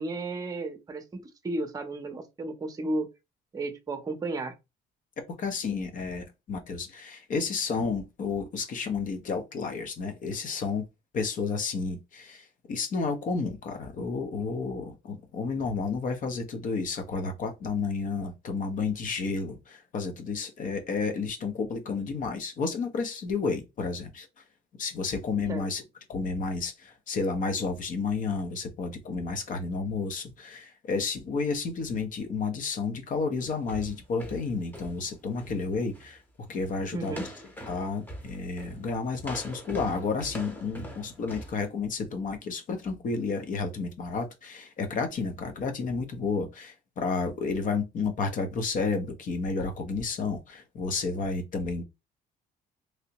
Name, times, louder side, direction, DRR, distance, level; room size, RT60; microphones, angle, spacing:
voice 1, 0.0-3.1 3.5-4.6 25.5-25.7 36.9-37.2, right 2 dB, 20° right, 0.7 m, -33 dB
voice 2, 5.4-10.8 11.1-24.3 24.8-25.8 26.1-36.2 36.5-37.3 37.7-51.8, left 4 dB, 50° left, 0.9 m, -31 dB
sound 1, 33.4-35.6 35.9-36.2 36.5-36.8 37.0-41.6, equal, 10° left, 1.0 m, -42 dB
3.2 x 2.7 x 2.9 m
cardioid pair, 110°, 17 cm